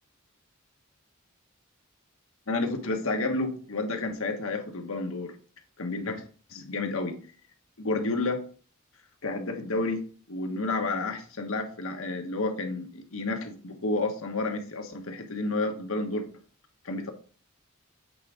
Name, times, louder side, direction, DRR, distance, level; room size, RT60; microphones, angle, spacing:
voice 1, 2.5-5.3 5.8-6.2 6.5-7.2 7.8-8.4 9.2-10.0 10.3-16.2 16.8-17.1, left 2 dB, 70° left, 4 dB, 1.3 m, -30 dB
8.5 x 3.7 x 5.0 m, 0.42 s
head